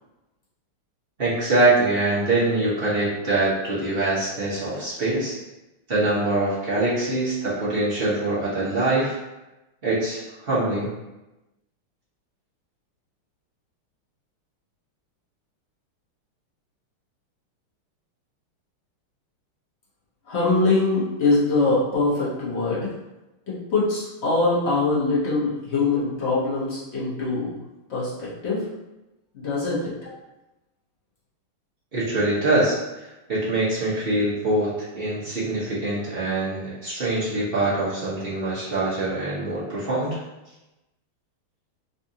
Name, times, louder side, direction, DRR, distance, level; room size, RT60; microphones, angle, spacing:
voice 1, 1.2-5.3 5.9-9.2 9.8-10.9 31.9-40.2, right 2 dB, 45° right, -9 dB, 0.8 m, -24 dB
voice 2, 20.3-22.9 23.5-27.6 27.9-28.6 29.3-30.1, left 3 dB, 45° left, -8 dB, 0.8 m, -23 dB
4.0 x 2.5 x 2.7 m, 1.0 s
omnidirectional pair, 2.4 m